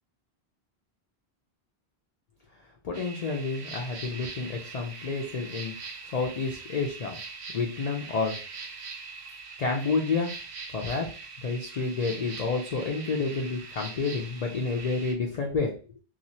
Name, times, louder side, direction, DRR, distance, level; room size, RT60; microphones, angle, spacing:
voice 1, 2.8-5.7 6.1-7.2 7.5-8.4 9.6-10.3 10.7-11.1 11.4-15.8, left 4 dB, 50° left, 1 dB, 0.5 m, -29 dB
sound 1, 2.9-15.1, right 4 dB, 65° right, 0.8 m, -42 dB
3.0 x 2.4 x 2.7 m, 0.36 s
omnidirectional pair, 1.1 m